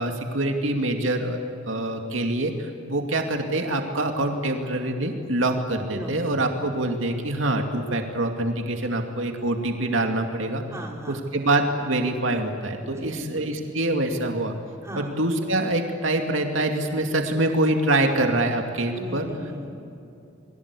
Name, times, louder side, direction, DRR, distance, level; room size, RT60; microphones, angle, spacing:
voice 1, 0.0-1.4 1.7-10.6 11.1-14.5 15.0-19.2, right 1 dB, 80° right, 3 dB, 2.5 m, -25 dB
voice 2, 10.7-11.2 12.8-13.5 14.8-15.2 18.9-19.8, equal, 15° right, -1 dB, 4.4 m, -37 dB
29.5 x 22.0 x 8.4 m, 2.7 s
head